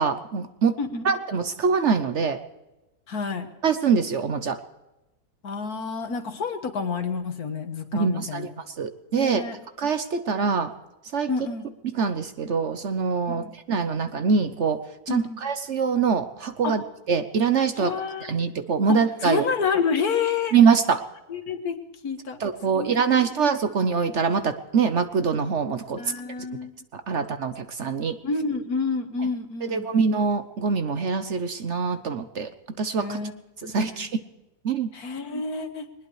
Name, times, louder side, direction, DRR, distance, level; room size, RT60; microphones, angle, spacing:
voice 1, 0.0-0.8 1.0-2.4 3.6-4.6 7.9-8.5 8.8-9.5 9.8-10.7 11.1-11.3 11.9-16.8 17.1-17.9 18.2-19.4 20.5-21.0 22.4-26.0 26.9-28.2 29.6-32.5 32.8-33.2 33.7-34.1 34.6-34.9, right 5 dB, 55° right, 10 dB, 1.0 m, -24 dB
voice 2, 3.1-3.5 5.4-8.5 9.2-9.6 11.3-11.7 13.3-13.5 15.1-15.4 16.6-16.8 17.8-18.3 18.9-20.6 21.3-21.8 22.0-22.4 22.7-22.9 26.0-26.7 28.2-29.9 33.0-33.3 33.6-34.0 34.9-35.9, left 5 dB, 70° left, 7 dB, 1.9 m, -29 dB
21.0 x 20.0 x 3.2 m, 1.0 s
omnidirectional pair, 1.7 m